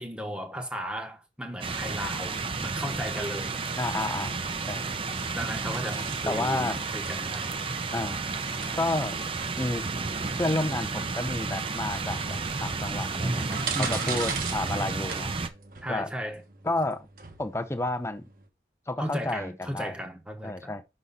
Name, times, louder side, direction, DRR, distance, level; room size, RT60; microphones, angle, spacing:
voice 1, 0.0-3.6 5.3-7.6 13.7-14.2 15.8-16.4 19.0-20.8, equal, 5° right, 1.0 m, -35 dB
sound 1, 1.6-15.5, right 4 dB, 30° right, 0.6 m, -32 dB
voice 2, 3.8-4.8 5.1-5.2 6.3-6.8 7.9-8.2 8.8-9.2 9.6-9.8 10.4-15.3 15.9-16.1 16.6-17.1 17.4-18.3 18.9-19.9 20.4-20.8, left 2 dB, 15° left, 0.6 m, -31 dB
sound 2, 5.1-18.5, right 6 dB, 50° right, 1.1 m, -42 dB
6.2 x 4.0 x 5.5 m
head